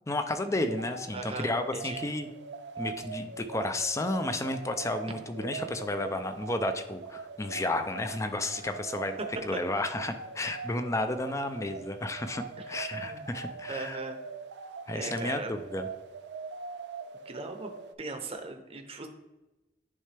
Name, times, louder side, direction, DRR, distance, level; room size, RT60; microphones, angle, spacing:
voice 1, 0.0-2.3 2.8-14.0 14.9-15.9, left 2 dB, 15° left, 8 dB, 0.4 m, -32 dB
sound 1, 0.6-17.9, right 4 dB, 70° right, 0.4 m, -42 dB
voice 2, 1.1-2.0 9.5-9.6 12.6-13.3 13.7-14.2 14.9-15.5 17.3-17.7 18.0-19.1, right 3 dB, 35° right, 5 dB, 0.7 m, -39 dB
9.6 x 3.3 x 3.3 m, 1.0 s
head